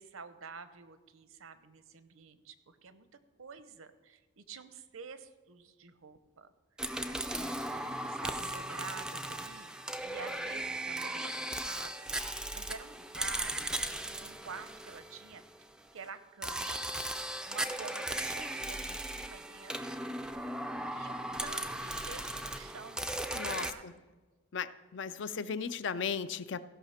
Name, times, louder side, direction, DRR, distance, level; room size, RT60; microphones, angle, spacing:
voice 1, 0.0-3.1 3.4-6.5 7.1-9.7 10.0-15.4 15.9-16.9 17.5-20.0 20.9-23.1 23.6-24.0 25.2-25.5, right 5 dB, 75° right, 11 dB, 0.8 m, -49 dB
sound 1, 6.8-15.6 16.4-23.7, right 1 dB, 5° right, 0.4 m, -37 dB
voice 2, 23.3-23.9 24.5-26.6, left 6 dB, 55° left, 14 dB, 0.4 m, -36 dB
16.0 x 5.7 x 5.7 m, 1.3 s
head